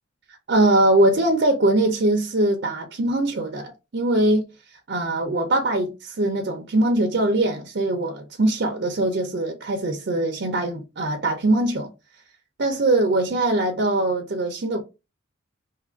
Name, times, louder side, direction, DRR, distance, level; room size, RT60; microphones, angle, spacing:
voice 1, 0.3-4.5 4.9-11.9 12.6-14.8, right 1 dB, 50° right, 0.5 m, -22 dB
2.7 x 2.4 x 3.7 m
head